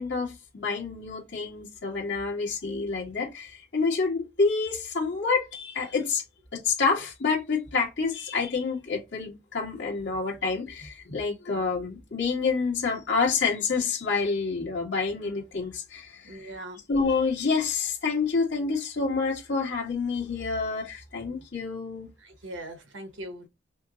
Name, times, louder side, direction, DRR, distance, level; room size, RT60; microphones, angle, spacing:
voice 1, 0.0-6.2 6.5-16.5 16.9-22.1, left 4 dB, 70° left, 1.8 m, -28 dB
voice 2, 16.2-16.8 22.2-23.5, right 1 dB, 90° right, 1.0 m, -40 dB
5.5 x 2.1 x 2.7 m
head